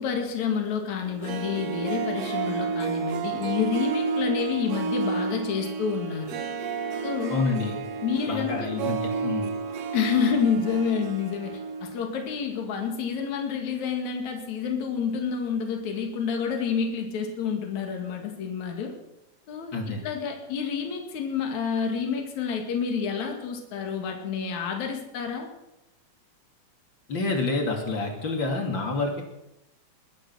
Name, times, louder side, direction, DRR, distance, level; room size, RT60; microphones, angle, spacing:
voice 1, 0.0-6.4 7.0-7.4 8.0-8.7 9.9-18.9 19.5-25.5, left 6 dB, 65° left, 3 dB, 3.4 m, -29 dB
Harp, 1.1-12.1 12.3-12.4, right 5 dB, 60° right, 2.2 m, -31 dB
voice 2, 7.3-7.8 8.3-9.5 19.7-20.0 27.1-29.2, left 3 dB, 40° left, 2 dB, 3.2 m, -28 dB
21.5 x 10.5 x 6.2 m, 0.88 s
omnidirectional pair, 3.5 m